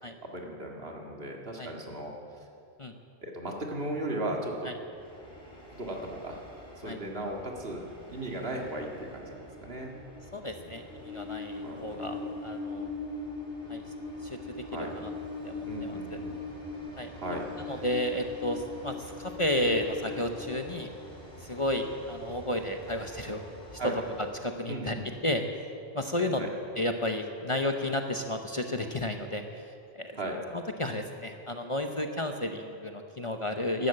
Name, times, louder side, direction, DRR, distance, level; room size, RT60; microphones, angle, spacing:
voice 1, 0.2-2.1 3.2-4.7 5.8-6.4 6.8-10.0 10.3-10.7 11.6-12.3 14.7-14.9 15.6-16.5 17.1-17.8 23.8-23.9 24.7-25.1 26.4-26.5 30.2-30.4, right 1 dB, 65° right, 0 dB, 2.2 m, -37 dB
Train, 4.9-24.4, left 3 dB, 60° left, 3.0 m, -42 dB
voice 2, 10.3-12.9 13.7-13.8 14.2-14.4 14.8-15.1 15.4-16.2 17.0-17.1 17.7-20.9 21.4-23.4 23.7-23.8 24.4-25.0 25.2-25.4 25.9-26.4 26.8-30.2 30.5-33.9, left 1 dB, 35° left, 5 dB, 0.8 m, -32 dB
13.0 x 12.5 x 8.6 m, 2.5 s
omnidirectional pair, 1.1 m